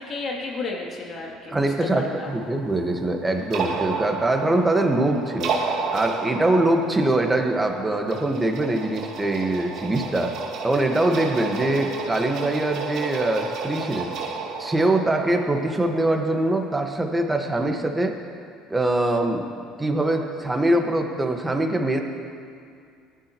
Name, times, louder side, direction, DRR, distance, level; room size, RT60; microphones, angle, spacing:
voice 1, 0.0-2.3, left 3 dB, 45° left, -2 dB, 2.9 m, -32 dB
voice 2, 1.5-5.5 5.9-10.4 10.6-14.1 14.6-18.1 18.7-22.0, right 1 dB, 15° right, 3 dB, 1.6 m, -23 dB
sound 1, 2.2-16.7, right 5 dB, 60° right, 1.8 m, -32 dB
18.0 x 11.0 x 3.1 m, 2.3 s
hypercardioid pair, 75°, 0 cm